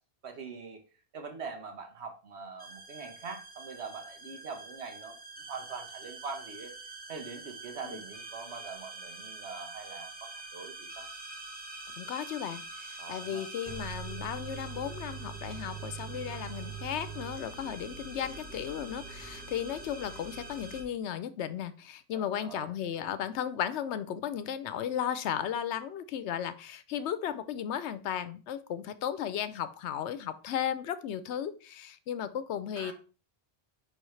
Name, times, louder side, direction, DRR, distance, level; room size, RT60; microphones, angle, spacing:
voice 1, 0.2-0.8 1.1-5.2 5.5-6.7 7.1-11.1 13.0-13.4 22.1-22.7 32.8-32.9, right 5 dB, 80° right, 4 dB, 1.4 m, -43 dB
sound 1, 2.6-20.8, right 4 dB, 10° right, 1.1 m, -44 dB
voice 2, 12.0-32.9, left 9 dB, 85° left, 13 dB, 0.9 m, -35 dB
10.0 x 3.5 x 3.2 m, 0.36 s
omnidirectional pair, 1.1 m